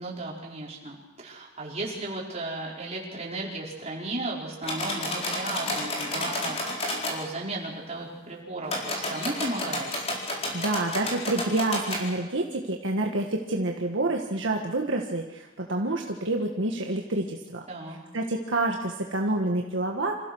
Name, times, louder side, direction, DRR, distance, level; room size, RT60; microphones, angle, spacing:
voice 1, 0.0-9.9 17.7-18.0, right 2 dB, 35° right, -4 dB, 4.8 m, -35 dB
sound 1, 4.6-7.2 8.6-12.0, left 1 dB, 30° left, 4.5 m, -31 dB
voice 2, 10.5-17.6 18.1-20.2, right 2 dB, 70° right, 1 dB, 1.6 m, -28 dB
26.5 x 15.5 x 6.3 m, 1.1 s
head